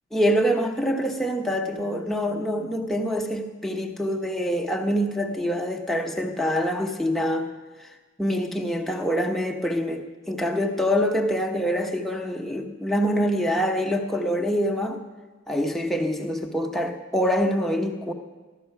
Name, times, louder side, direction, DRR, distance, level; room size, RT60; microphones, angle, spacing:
voice 1, 0.1-7.5 8.2-15.0 15.5-18.1, equal, ahead, 2 dB, 1.0 m, -25 dB
15.0 x 12.5 x 5.9 m, 1.3 s
head